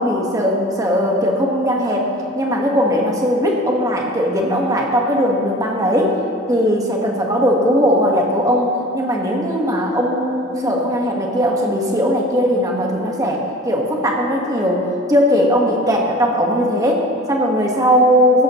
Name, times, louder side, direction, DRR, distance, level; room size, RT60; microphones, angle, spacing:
voice 1, 0.0-6.2 6.5-18.4, equal, 20° right, -1 dB, 1.5 m, -18 dB
15.5 x 13.5 x 3.1 m, 2.5 s
head